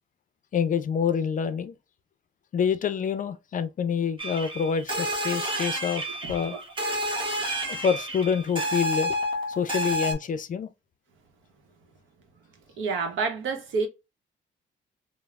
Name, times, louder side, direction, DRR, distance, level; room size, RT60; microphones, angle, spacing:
voice 1, 0.5-1.7 2.5-6.0 6.3-6.6 7.7-9.2 9.5-10.7, left 7 dB, 40° left, 0.4 m, -27 dB
sound 1, 4.2-10.1, equal, 25° right, 0.9 m, -30 dB
voice 2, 6.2-6.6 12.8-13.9, right 4 dB, 75° right, 0.8 m, -29 dB
3.1 x 2.0 x 2.3 m
cardioid pair, 90°, 20 cm